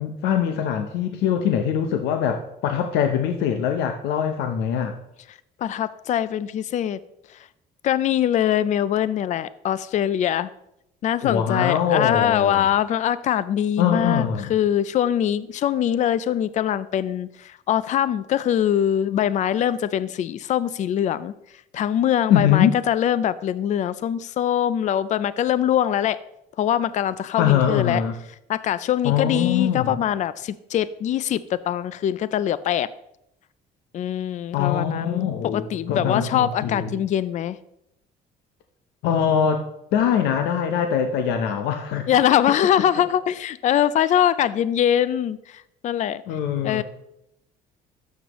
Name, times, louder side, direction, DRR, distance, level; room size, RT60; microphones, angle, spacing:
voice 1, 0.0-4.9 11.2-12.7 13.8-14.5 22.3-22.8 27.4-28.1 29.0-30.0 34.5-37.0 39.0-39.6 39.9-42.1 46.3-46.8, left 8 dB, 90° left, 6 dB, 0.7 m, -22 dB
voice 2, 5.6-7.0 7.3-7.4 7.8-10.5 11.0-21.3 21.7-26.2 26.6-28.0 28.5-32.9 33.9-37.6 42.1-46.2 46.6-46.8, left 10 dB, 45° left, 16 dB, 0.4 m, -23 dB
12.0 x 7.3 x 3.0 m, 0.81 s
cardioid pair, 110°, 17 cm